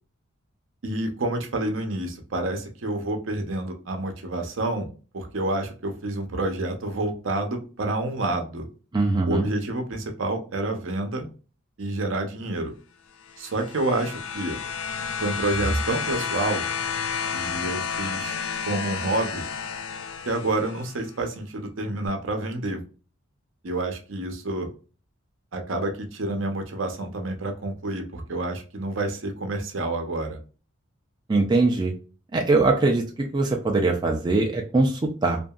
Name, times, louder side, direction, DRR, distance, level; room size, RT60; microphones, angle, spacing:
voice 1, 0.8-4.9 5.1-8.7 9.2-11.3 11.8-12.7 13.4-14.6 15.2-16.6 17.3-18.4 18.6-19.4 20.2-22.8 23.6-24.7 25.5-30.4, right 2 dB, 65° right, 4 dB, 0.7 m, -28 dB
voice 2, 8.9-9.5 31.3-31.9 32.3-35.4, right 3 dB, 20° right, 0 dB, 0.4 m, -22 dB
sound 1, 13.2-21.0 22.1-22.2, left 6 dB, 90° left, 0.4 m, -31 dB
2.7 x 2.5 x 2.3 m, 0.36 s
head